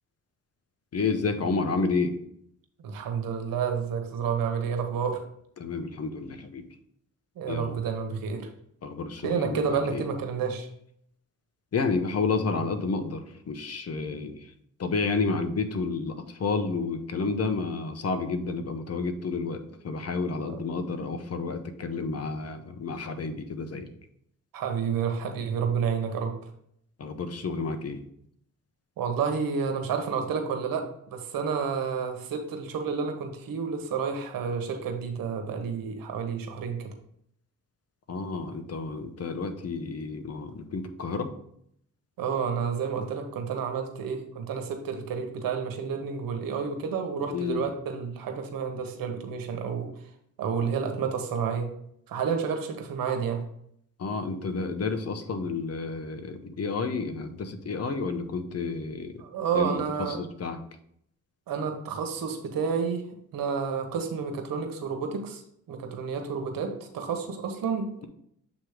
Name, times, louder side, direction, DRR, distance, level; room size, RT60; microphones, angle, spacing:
voice 1, 0.9-2.2 5.6-6.6 7.5-7.8 8.8-10.0 11.7-13.2 13.5-14.5 14.8-23.9 27.0-28.0 38.1-41.3 47.3-47.6 54.0-59.1 59.5-60.6, left 4 dB, 45° left, 8 dB, 0.9 m, -30 dB
voice 2, 2.8-5.2 7.4-8.5 9.2-10.7 20.5-20.6 24.5-26.3 29.0-36.9 42.2-49.9 50.4-51.7 52.1-53.4 59.2-60.2 61.5-63.1 63.3-65.4 65.7-68.1, right 6 dB, 85° right, 5 dB, 1.1 m, -30 dB
7.4 x 3.1 x 4.9 m, 0.70 s
cardioid pair, 75°, 33 cm